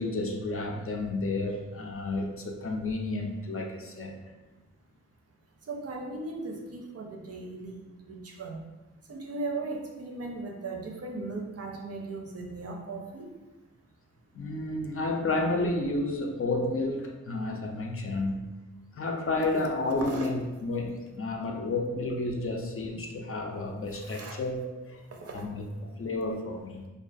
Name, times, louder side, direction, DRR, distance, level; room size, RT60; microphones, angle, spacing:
voice 1, 0.0-4.2 14.3-18.6 19.0-25.0 25.3-26.9, left 2 dB, 45° left, 2 dB, 0.4 m, -31 dB
voice 2, 5.6-8.6 9.1-13.3 19.8-20.3 23.9-24.4 25.1-25.5, right 3 dB, 50° right, 1 dB, 0.5 m, -37 dB
2.3 x 2.3 x 2.5 m, 1.1 s
cardioid pair, 55°, 31 cm